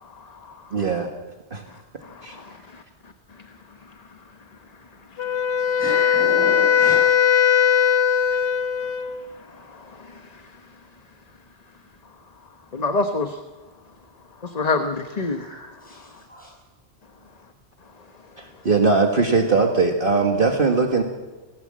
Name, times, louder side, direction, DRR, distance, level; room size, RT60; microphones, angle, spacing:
voice 1, 0.2-0.6 2.0-2.8 9.7-10.4 12.7-13.4 14.4-15.5, left 3 dB, 35° left, 6 dB, 1.2 m, -27 dB
voice 2, 0.7-1.1 1.5-1.6 2.2-2.4 5.9-6.2 18.4-21.0, right 4 dB, 50° right, 2 dB, 1.8 m, -20 dB
Wind instrument woodwind instrument, 5.2-9.2, left 8 dB, 80° left, 1.3 m, -19 dB
voice 3, 5.8-7.2 15.2-16.5, left 1 dB, 5° left, -4 dB, 7.4 m, -34 dB
26.0 x 17.5 x 7.5 m, 1.2 s
omnidirectional pair, 1.2 m